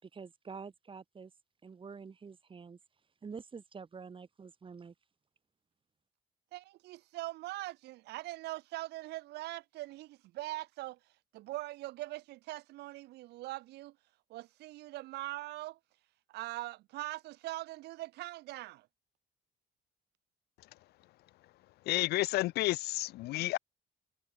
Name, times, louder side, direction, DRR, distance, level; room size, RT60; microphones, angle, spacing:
voice 1, 0.0-1.3 1.6-2.8 3.2-4.9, right 5 dB, 30° right, 5.6 m, -47 dB
voice 2, 6.5-11.0 11.3-13.9 14.3-15.8 16.3-18.9, right 18 dB, 80° right, 1.1 m, -42 dB
voice 3, 21.9-23.6, left 18 dB, 70° left, 0.4 m, -31 dB
cardioid pair, 110°, 17 cm